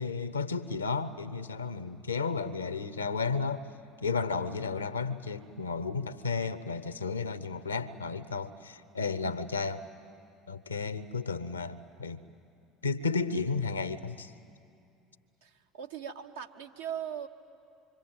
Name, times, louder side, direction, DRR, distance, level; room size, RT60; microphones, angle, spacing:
voice 1, 0.0-3.7 4.0-9.8 10.5-12.2 12.8-14.3, left 4 dB, 85° left, 15 dB, 0.8 m, -33 dB
voice 2, 15.4-17.3, right 9 dB, 75° right, 3 dB, 1.3 m, -39 dB
26.0 x 24.5 x 9.0 m, 2.5 s
figure-of-eight pair, 65°, 0 cm